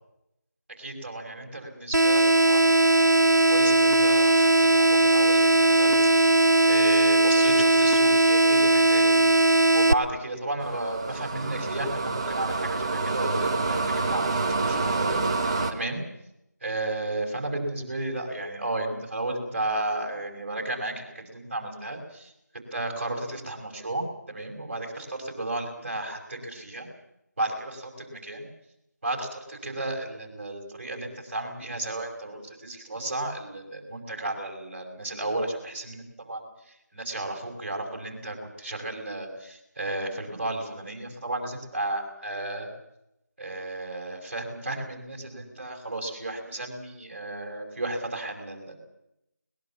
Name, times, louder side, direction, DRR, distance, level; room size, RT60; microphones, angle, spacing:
voice 1, 0.8-6.0 6.3-6.4 6.7-9.4 9.7-16.0 16.6-26.9 27.4-28.5 29.0-42.7 43.4-48.8, right 2 dB, 40° right, 3 dB, 5.5 m, -33 dB
sound 1, 1.9-9.9, right 2 dB, 85° right, 0.9 m, -19 dB
sound 2, 10.6-15.7, right 3 dB, 20° right, 1.4 m, -27 dB
22.0 x 20.5 x 7.3 m, 0.83 s
figure-of-eight pair, 170°, 9 cm